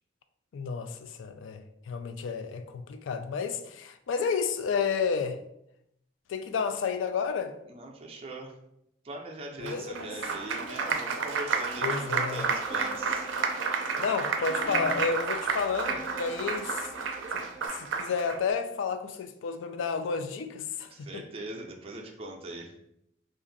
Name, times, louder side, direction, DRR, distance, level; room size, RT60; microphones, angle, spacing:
voice 1, 0.5-5.4 6.3-7.5 9.6-10.1 11.8-12.5 14.0-21.2, left 5 dB, 90° left, 0.3 m, -31 dB
voice 2, 7.7-8.5 9.0-13.3 20.9-22.7, right 2 dB, 30° right, 0.4 m, -41 dB
Applause, 9.7-18.4, right 5 dB, 85° right, 0.4 m, -31 dB
sound 1, 12.6-15.0 15.8-17.7, right 1 dB, 20° left, 0.5 m, -43 dB
2.5 x 2.5 x 3.8 m
head